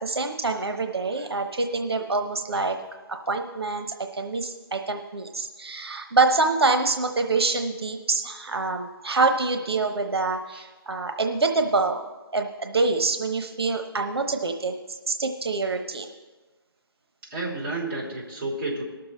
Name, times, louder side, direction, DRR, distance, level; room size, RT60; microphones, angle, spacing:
voice 1, 0.0-2.8 3.1-12.0 12.3-14.8 15.1-16.1, right 3 dB, 90° right, 5 dB, 0.9 m, -26 dB
voice 2, 17.2-18.8, right 2 dB, 30° right, -4 dB, 2.9 m, -31 dB
19.0 x 6.7 x 4.2 m, 1.3 s
hypercardioid pair, 160°, 13 cm